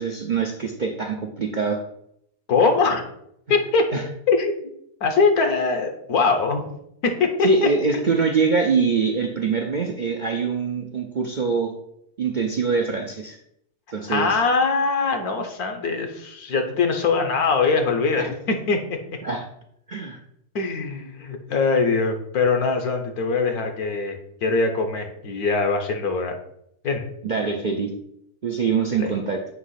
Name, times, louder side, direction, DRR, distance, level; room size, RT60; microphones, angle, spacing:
voice 1, 0.0-1.8 3.9-4.0 7.4-11.7 12.2-13.4 13.9-14.4 18.2-18.3 19.2-19.4 19.9-20.2 27.2-27.9 28.4-29.4, right 5 dB, 60° right, 1 dB, 0.5 m, -24 dB
voice 2, 2.5-3.0 3.5-3.9 4.3-4.7 5.0-6.6 7.0-7.3 7.6-7.7 14.1-19.0 20.5-26.4 26.8-27.0 29.0-29.1, left 4 dB, 70° left, 5 dB, 1.5 m, -22 dB
8.3 x 3.0 x 5.7 m, 0.73 s
omnidirectional pair, 1.7 m